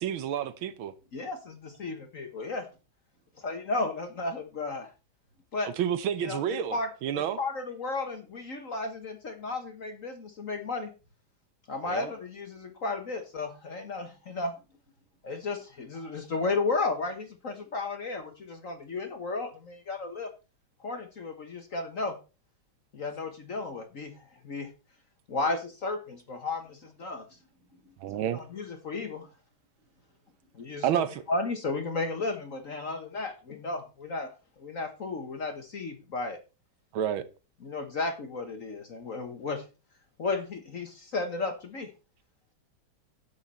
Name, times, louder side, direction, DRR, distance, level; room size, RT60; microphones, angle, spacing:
voice 1, 0.0-0.9 5.6-6.8 7.0-7.4 11.9-12.1 28.0-28.4 30.8-31.2 36.9-37.2, right 9 dB, 90° right, 1.7 m, -29 dB
voice 2, 1.1-2.7 3.4-4.9 5.5-5.7 6.2-6.9 7.2-10.9 11.7-14.6 15.2-20.3 20.8-22.2 22.9-24.7 25.3-27.2 28.1-29.3 30.5-30.9 31.3-36.4 37.6-39.6 40.2-41.9, left 3 dB, 45° left, 1.4 m, -34 dB
voice 3, 27.3-28.2 29.8-30.8, left 1 dB, 50° right, 4.9 m, -66 dB
10.5 x 8.3 x 4.3 m
omnidirectional pair, 2.2 m